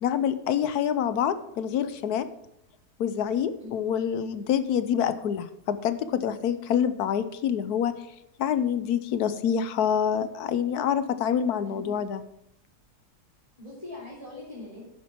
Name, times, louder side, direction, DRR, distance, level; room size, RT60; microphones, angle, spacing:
voice 1, 0.0-2.3 3.0-7.9 8.4-12.2, left 8 dB, 75° left, 12 dB, 1.2 m, -26 dB
voice 2, 11.6-11.9 13.6-14.8, left 2 dB, 20° left, -6 dB, 3.1 m, -41 dB
10.0 x 7.5 x 5.9 m, 0.81 s
omnidirectional pair, 1.7 m